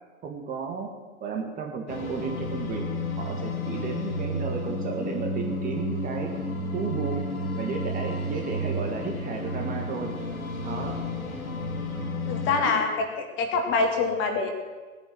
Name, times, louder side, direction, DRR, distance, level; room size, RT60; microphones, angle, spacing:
voice 1, 0.2-0.9 1.2-2.8 3.2-6.3 6.7-7.3 7.6-10.1 10.6-11.0 12.6-12.9, right 5 dB, 20° right, 2 dB, 1.8 m, -33 dB
sound 1, 1.9-12.6, left 1 dB, 75° left, 3.6 m, -31 dB
voice 2, 12.3-13.1 13.4-14.5, left 4 dB, 30° left, 4 dB, 2.2 m, -25 dB
18.5 x 9.3 x 7.7 m, 1.3 s
figure-of-eight pair, 110°, 42 cm